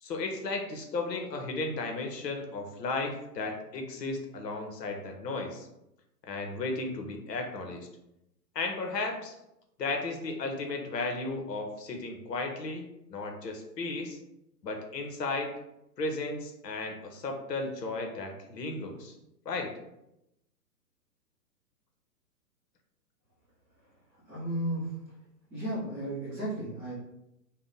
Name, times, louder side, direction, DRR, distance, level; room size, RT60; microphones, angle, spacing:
voice 1, 0.0-5.7 6.3-7.9 8.5-9.3 9.8-12.8 13.1-14.2 14.6-15.5 16.0-19.1 19.5-19.7, left 3 dB, 75° left, 3 dB, 0.9 m, -34 dB
voice 2, 24.3-25.0 25.5-26.9, right 1 dB, 5° right, -14 dB, 0.5 m, -34 dB
2.8 x 2.0 x 3.8 m, 0.85 s
hypercardioid pair, 135°, 49 cm